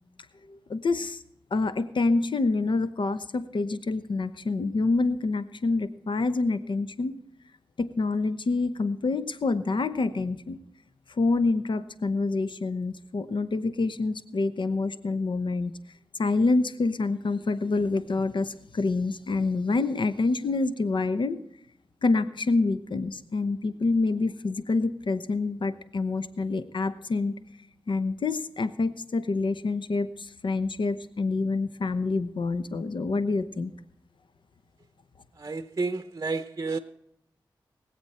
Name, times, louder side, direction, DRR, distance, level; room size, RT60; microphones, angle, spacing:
voice 1, 0.5-1.2 1.5-7.1 7.8-10.6 11.2-15.7 16.2-21.4 22.0-27.3 27.9-33.7, left 3 dB, 70° left, 0.9 m, -27 dB
voice 2, 35.4-36.8, right 3 dB, 40° right, 0.8 m, -30 dB
22.0 x 7.9 x 4.4 m
cardioid pair, 40°, 9 cm